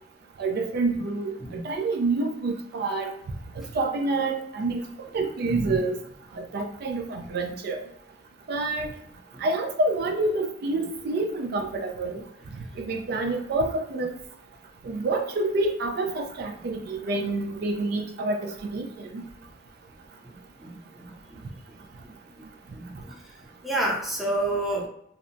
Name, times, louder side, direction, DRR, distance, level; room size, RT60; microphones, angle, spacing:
voice 1, 0.4-1.3 1.6-3.1 3.6-4.8 5.1-6.0 6.3-7.8 8.5-8.9 9.4-12.2 12.8-14.1 14.8-19.2, right 2 dB, 60° right, 4 dB, 0.3 m, -27 dB
voice 2, 5.4-5.8 20.6-21.1 22.4-22.5 22.7-23.2 23.6-24.9, right 1 dB, ahead, -3 dB, 0.5 m, -29 dB
2.7 x 2.1 x 2.5 m, 0.73 s
head